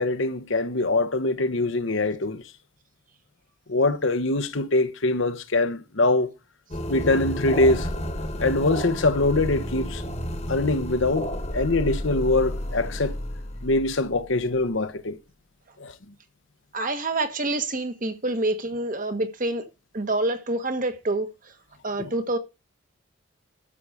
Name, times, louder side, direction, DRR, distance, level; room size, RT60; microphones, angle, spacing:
voice 1, 0.0-2.4 3.7-6.3 6.9-7.9 8.4-10.0 10.5-13.2 13.6-15.2 15.8-15.9 22.0-22.1, left 2 dB, 70° left, 1.1 m, -23 dB
sound 1, 6.7-14.6, equal, 30° left, 1.4 m, -31 dB
voice 2, 16.7-19.6 19.9-21.3 21.8-22.4, right 2 dB, 40° right, 1.4 m, -27 dB
12.5 x 6.1 x 5.0 m
head